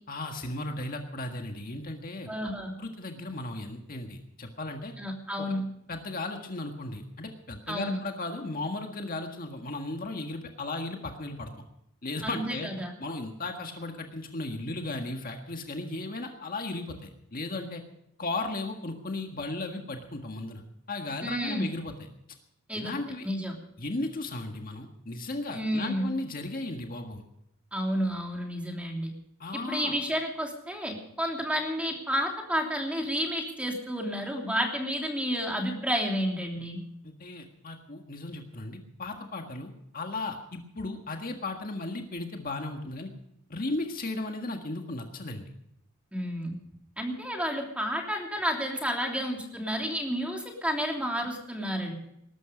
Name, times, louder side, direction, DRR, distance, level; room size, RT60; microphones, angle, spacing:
voice 1, 0.1-2.3 2.8-4.9 5.4-5.5 5.9-11.5 12.0-12.7 13.0-17.8 18.2-21.9 22.7-23.3 23.8-27.2 29.4-30.0 37.0-43.1 43.5-45.5, left 2 dB, 45° left, 4 dB, 1.7 m, -35 dB
voice 2, 2.3-2.8 5.0-5.7 7.7-8.0 12.2-12.9 21.2-21.7 22.7-23.0 23.2-23.5 25.5-26.1 27.7-29.1 29.5-36.8 46.1-46.6 47.0-52.0, equal, 5° right, 1 dB, 3.0 m, -31 dB
20.0 x 12.5 x 5.1 m, 0.78 s
head